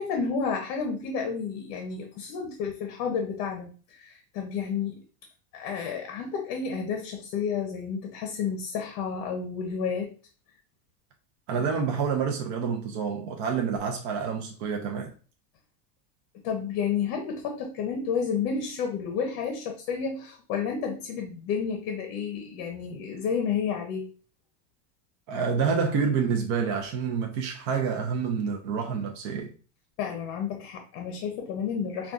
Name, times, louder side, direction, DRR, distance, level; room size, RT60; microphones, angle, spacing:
voice 1, 0.0-5.0 5.5-10.1 16.4-24.1 30.0-32.1, left 6 dB, 50° left, 0.7 m, -31 dB
voice 2, 11.5-15.1 25.3-29.5, right 6 dB, 40° right, 0.5 m, -28 dB
5.0 x 2.4 x 2.4 m
supercardioid pair, 160°, 48 cm